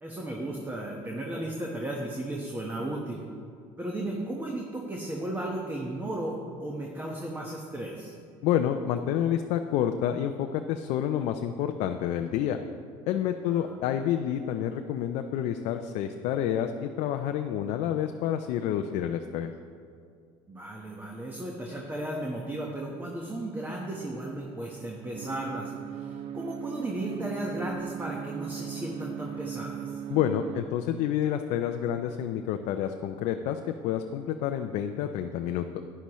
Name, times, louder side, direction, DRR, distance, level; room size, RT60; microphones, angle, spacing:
voice 1, 0.0-3.2 3.8-8.1 13.5-13.7 20.5-29.8, right 1 dB, 15° right, -1 dB, 1.2 m, -35 dB
voice 2, 8.4-12.6 13.1-19.5 30.1-35.8, left 10 dB, 70° left, 6 dB, 0.5 m, -29 dB
sound 1, 25.1-30.6, right 9 dB, 60° right, 0.5 m, -38 dB
11.5 x 9.9 x 3.1 m, 2.3 s
supercardioid pair, 100°, 12 cm